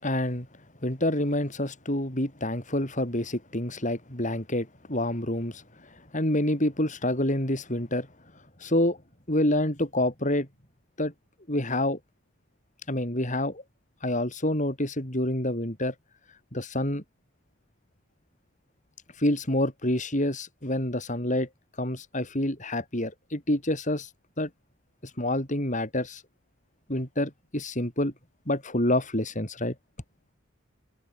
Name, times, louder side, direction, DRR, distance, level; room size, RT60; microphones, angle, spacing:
voice 1, 0.0-0.5 0.8-8.1 8.3-9.0 9.3-10.5 11.0-11.1 11.5-12.0 12.9-13.6 14.0-15.9 16.3-17.0 19.1-24.1 24.4-24.5 25.0-26.2 26.9-28.1 28.5-29.7, left 1 dB, 40° left, 6.4 m, -28 dB
head